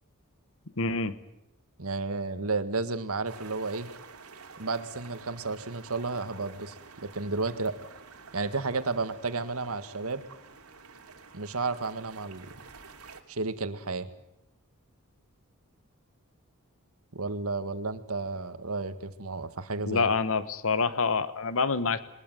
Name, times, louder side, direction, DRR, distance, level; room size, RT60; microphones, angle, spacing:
voice 1, 0.8-1.1 19.9-22.0, left 4 dB, 65° left, 14 dB, 1.4 m, -26 dB
voice 2, 1.8-3.9 4.6-7.8 8.3-10.2 11.3-12.5 13.3-14.1 17.1-20.1, right 3 dB, 70° right, 11 dB, 1.8 m, -32 dB
sound 1, 3.2-13.2, right 4 dB, 85° right, 2.8 m, -50 dB
22.0 x 20.5 x 9.2 m, 0.85 s
head